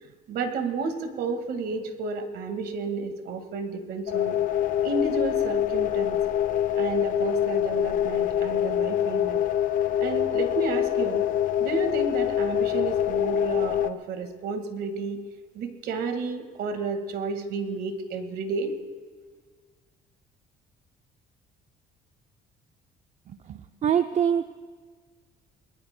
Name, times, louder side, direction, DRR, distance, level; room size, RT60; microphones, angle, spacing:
voice 1, 0.3-4.4 4.8-6.2 6.8-9.4 10.0-11.2 11.6-15.2 15.5-18.7, right 4 dB, 70° right, 7 dB, 1.7 m, -31 dB
sound 1, 4.1-13.9, left 10 dB, 50° left, 0.7 m, -25 dB
voice 2, 23.3-24.4, right 8 dB, 45° right, 8 dB, 0.6 m, -25 dB
28.0 x 20.5 x 2.2 m, 1.5 s
cardioid pair, 110°, 17 cm